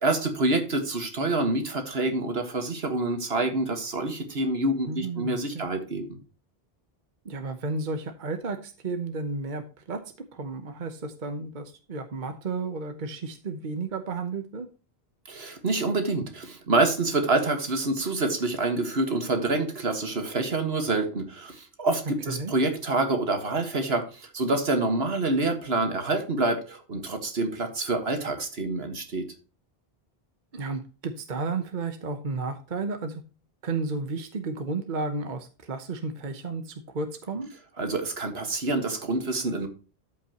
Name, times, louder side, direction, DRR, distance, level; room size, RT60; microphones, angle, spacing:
voice 1, 0.0-6.1 15.3-29.2 37.8-39.7, right 2 dB, 80° right, 6 dB, 2.0 m, -27 dB
voice 2, 4.9-5.6 7.2-10.0 10.3-14.7 22.3-22.5 30.5-33.2 33.6-37.5, right 3 dB, 50° right, 8 dB, 1.1 m, -32 dB
13.0 x 5.6 x 3.0 m, 0.35 s
omnidirectional pair, 1.0 m